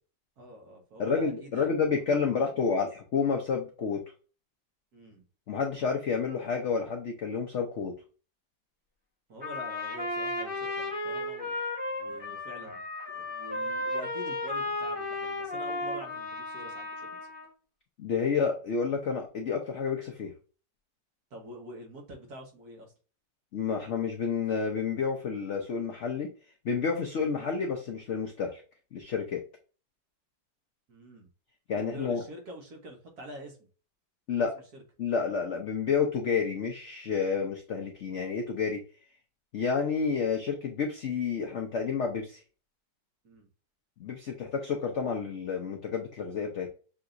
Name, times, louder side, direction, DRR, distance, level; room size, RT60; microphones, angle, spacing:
voice 1, 0.4-2.8 4.9-5.2 9.3-11.6 12.0-12.9 13.1-17.3 21.3-22.9 30.9-31.3 31.7-33.7 34.7-34.8 43.2-43.5, equal, 55° right, 1 dB, 1.7 m, -46 dB
voice 2, 1.0-4.0 5.5-8.0 18.0-20.3 23.5-26.3 26.6-28.6 28.9-29.4 31.7-32.2 34.3-34.5 35.0-38.8 39.5-42.4 44.0-46.7, left 5 dB, 75° left, 3 dB, 0.6 m, -30 dB
Trumpet, 9.4-17.5, left 2 dB, 5° right, 1.1 m, -34 dB
6.9 x 2.8 x 2.5 m, 0.37 s
omnidirectional pair, 2.1 m